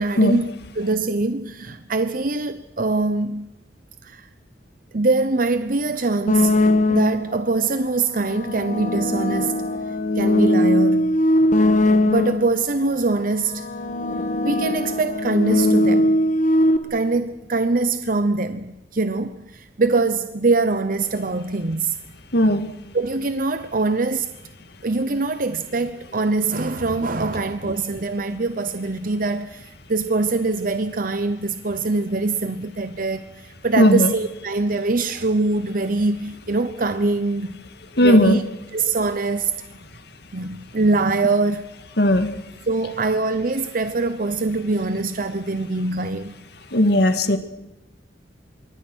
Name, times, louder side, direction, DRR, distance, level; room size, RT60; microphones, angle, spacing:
voice 1, 0.0-3.5 4.0-4.3 4.9-6.6 6.9-9.6 10.2-11.2 12.1-13.6 14.4-16.2 16.9-22.0 22.9-24.3 24.8-37.6 38.0-38.4 38.7-39.5 40.3-41.7 42.7-46.3, right 3 dB, 50° right, 0.9 m, -23 dB
sound 1, 6.3-7.4 8.1-12.6 13.4-16.8, left 1 dB, 45° left, 1.7 m, -20 dB
voice 2, 22.3-22.7 33.8-34.1 38.0-38.4 42.0-42.3 46.7-47.4, left 1 dB, 65° left, 2.0 m, -16 dB
26.5 x 23.0 x 6.3 m
head